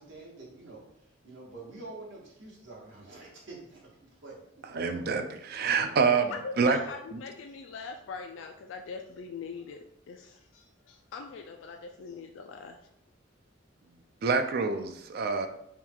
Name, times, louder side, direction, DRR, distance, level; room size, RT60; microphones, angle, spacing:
voice 1, 0.0-5.2 5.6-6.0 6.7-6.9, right 2 dB, 70° right, -4 dB, 1.4 m, -48 dB
voice 2, 4.7-6.3 6.6-6.8 7.1-7.2 14.2-15.5, right 5 dB, 50° right, 7 dB, 0.4 m, -26 dB
voice 3, 6.3-12.8, left 5 dB, 70° left, 4 dB, 0.3 m, -42 dB
3.6 x 2.3 x 4.5 m, 0.76 s
head